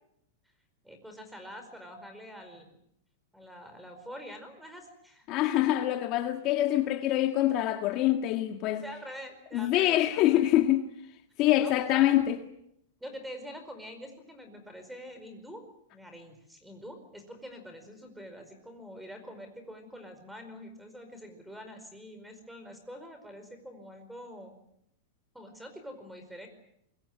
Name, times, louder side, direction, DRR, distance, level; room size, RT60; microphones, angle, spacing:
voice 1, 0.8-2.8 3.3-5.3 8.7-10.5 11.6-12.1 13.0-24.5 25.3-26.5, equal, ahead, 4.9 m, -45 dB
voice 2, 5.3-8.8 9.5-10.8 11.4-12.4, left 14 dB, 35° left, 1.6 m, -25 dB
25.0 x 23.0 x 7.8 m
supercardioid pair, 155°, 0 cm